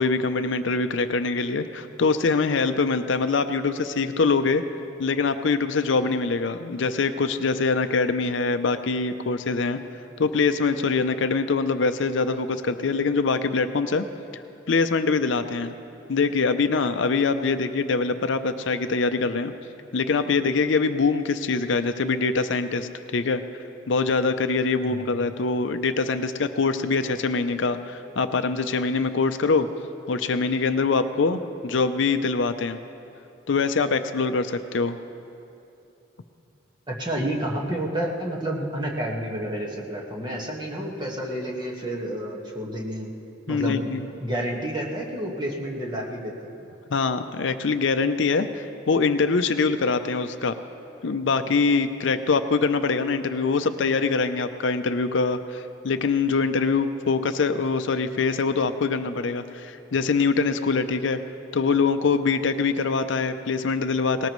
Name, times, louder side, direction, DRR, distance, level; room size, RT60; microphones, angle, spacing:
voice 1, 0.0-4.6 5.0-9.8 10.2-14.1 14.7-15.7 16.1-19.5 19.9-23.4 23.9-29.7 30.1-32.8 33.5-35.0 43.5-44.0 46.9-50.6 51.0-61.2 61.5-64.3, left 4 dB, 65° left, 9 dB, 0.5 m, -24 dB
voice 2, 36.9-43.1 43.5-43.8 44.2-46.5, right 1 dB, 20° right, -2 dB, 1.6 m, -30 dB
19.0 x 18.5 x 3.1 m, 2.8 s
head